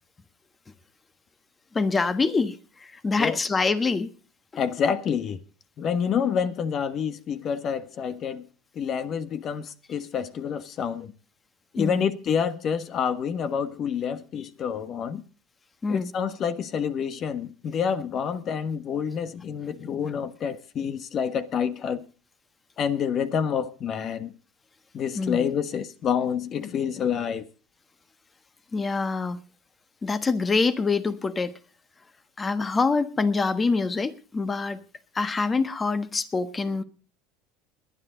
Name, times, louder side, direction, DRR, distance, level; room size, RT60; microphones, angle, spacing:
voice 1, 1.7-4.1 11.8-12.1 15.8-16.1 25.2-25.5 28.7-29.4 30.0-31.5 32.4-34.8 35.1-36.8, left 4 dB, 20° left, 1.4 m, -25 dB
voice 2, 4.6-5.4 5.8-8.5 8.7-11.1 11.7-15.2 15.9-22.0 22.8-24.3 24.9-27.5, left 7 dB, 45° left, 1.3 m, -28 dB
21.0 x 10.0 x 3.9 m
supercardioid pair, 100°, 0 cm